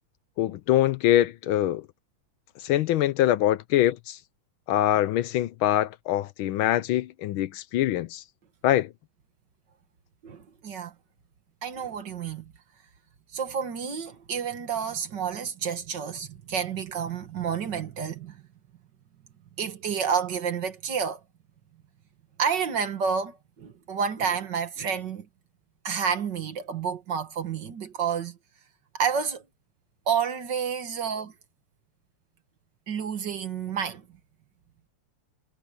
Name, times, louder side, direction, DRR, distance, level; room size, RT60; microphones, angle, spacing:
voice 1, 0.4-1.8 2.6-4.2 4.7-8.2 8.6-8.9, left 13 dB, 75° left, 1.4 m, -24 dB
voice 2, 10.2-10.9 11.6-12.5 13.3-18.4 19.6-21.2 22.4-25.3 25.8-28.4 28.9-29.4 30.1-31.3 32.9-34.1, right 7 dB, 55° right, 2.1 m, -30 dB
omnidirectional pair, 2.4 m